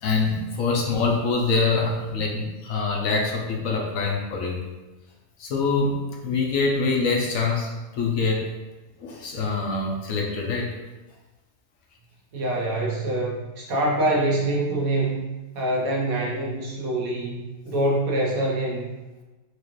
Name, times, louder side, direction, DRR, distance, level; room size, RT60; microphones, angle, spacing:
voice 1, 0.0-4.5 5.4-7.7 8.0-8.5 9.0-10.8, left 4 dB, 75° left, -1 dB, 1.1 m, -24 dB
voice 2, 12.3-15.2 15.5-18.9, right 1 dB, 75° right, -3 dB, 1.4 m, -25 dB
4.6 x 2.5 x 3.0 m, 1.1 s
omnidirectional pair, 1.5 m